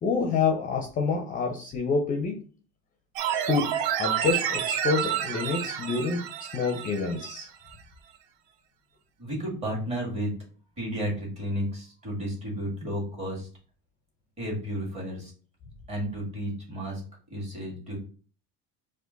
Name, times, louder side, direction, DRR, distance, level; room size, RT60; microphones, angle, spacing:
voice 1, 0.0-2.4 3.5-3.7 4.0-6.2 6.5-7.5, left 4 dB, 25° left, 3 dB, 0.6 m, -27 dB
sound 1, 3.2-7.4 7.7-7.8, right 9 dB, 75° right, 0.6 m, -29 dB
voice 2, 9.2-10.3 10.8-13.5 14.4-15.3 15.9-17.0 17.3-18.0, equal, 20° right, -3 dB, 1.9 m, -32 dB
4.6 x 2.5 x 3.9 m, 0.40 s
cardioid pair, 150°, 30 cm